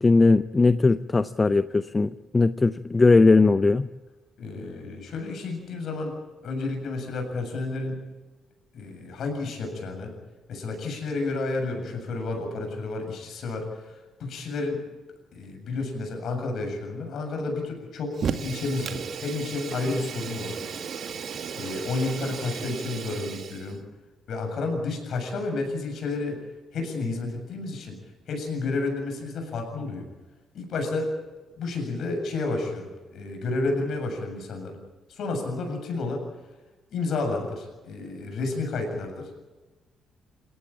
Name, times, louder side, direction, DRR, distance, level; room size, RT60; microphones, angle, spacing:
voice 1, 0.0-3.9, left 3 dB, 25° left, 14 dB, 0.7 m, -19 dB
voice 2, 4.4-6.1 6.4-8.0 8.7-10.1 10.5-14.8 15.3-20.6 21.6-23.8 24.3-26.4 26.7-28.0 28.3-30.1 30.5-31.1 31.6-34.8 35.1-36.2 36.9-39.4, left 3 dB, 55° left, 4 dB, 7.5 m, -31 dB
Fire, 18.1-23.8, right 6 dB, 50° right, 2.0 m, -34 dB
27.5 x 15.0 x 8.8 m, 1.2 s
figure-of-eight pair, 45°, 0 cm